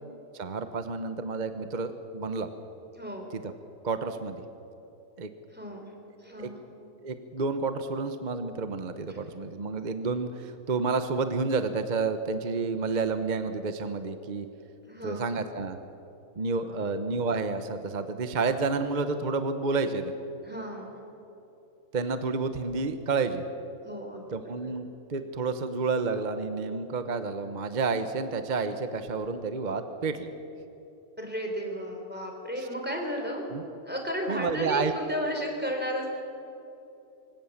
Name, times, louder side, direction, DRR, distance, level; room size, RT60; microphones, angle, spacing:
voice 1, 0.3-2.5 3.3-3.5 3.8-4.4 5.2-5.3 6.4-6.5 7.0-14.5 15.0-15.8 16.4-20.1 21.9-23.4 24.3-30.3 33.5-33.6 34.3-34.9, right 4 dB, 35° right, 9 dB, 1.0 m, -30 dB
voice 2, 2.9-3.3 5.5-5.9 6.2-6.6 14.9-15.3 16.7-16.9 20.4-21.0 23.8-24.4 31.2-33.4 33.8-36.1, equal, 5° right, 1 dB, 3.7 m, -34 dB
24.5 x 16.5 x 7.3 m, 2.9 s
omnidirectional pair, 1.5 m